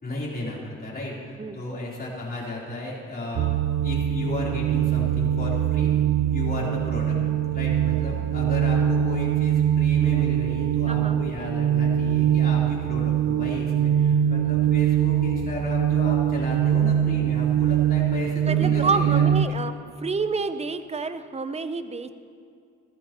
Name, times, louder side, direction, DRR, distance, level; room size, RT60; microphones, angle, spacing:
voice 1, 0.0-3.5 3.8-5.9 6.3-7.2 7.5-19.3, left 2 dB, 30° left, -5 dB, 3.6 m, -34 dB
sound 1, 3.4-19.5, right 10 dB, 65° right, 0.6 m, -22 dB
voice 2, 10.9-11.2 18.5-19.7 20.0-22.1, right 4 dB, 20° right, 11 dB, 0.6 m, -28 dB
15.5 x 14.0 x 3.0 m, 2.3 s
cardioid pair, 95°, 31 cm